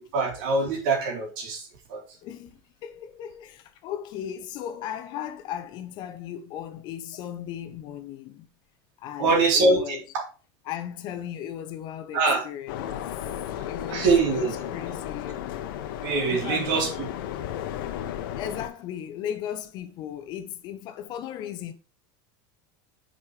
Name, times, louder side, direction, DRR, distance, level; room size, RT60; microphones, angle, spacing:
voice 1, 0.1-2.0 9.2-10.0 12.1-12.4 13.9-14.5 16.0-17.1, right 3 dB, 60° right, 2.7 m, -23 dB
voice 2, 2.2-8.5 9.0-10.0 10.7-13.0 13.6-15.4 16.2-16.7 18.3-21.7, left 10 dB, 40° left, 0.7 m, -36 dB
sound 1, 12.7-18.7, left 11 dB, 75° left, 0.9 m, -34 dB
6.1 x 4.9 x 4.8 m
supercardioid pair, 165°, 11 cm